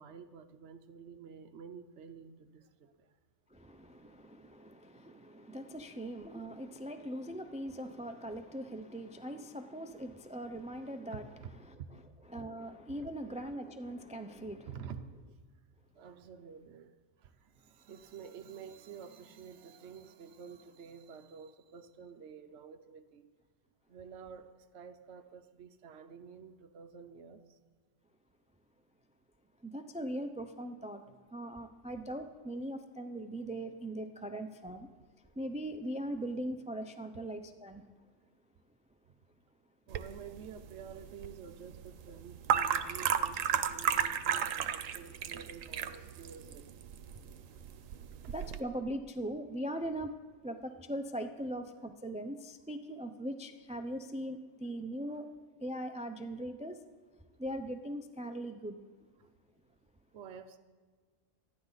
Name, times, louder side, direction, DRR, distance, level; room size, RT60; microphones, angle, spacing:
voice 1, 0.0-3.1 11.1-11.5 12.4-12.5 14.7-15.2 16.0-16.9 17.2-23.3 23.9-27.6 39.9-46.6 55.1-55.2 59.2-59.3 60.1-60.6, right 6 dB, 65° right, 6 dB, 1.0 m, -50 dB
voice 2, 3.5-11.3 11.6-11.8 12.3-14.7 29.6-31.0 31.3-34.9 35.4-37.8 48.3-50.1 50.4-55.3 55.6-56.8 57.4-58.8, right 1 dB, 10° right, 7 dB, 0.4 m, -40 dB
sound 1, 39.9-48.6, right 8 dB, 90° right, 1.1 m, -34 dB
27.0 x 11.0 x 4.0 m, 1.5 s
omnidirectional pair, 1.3 m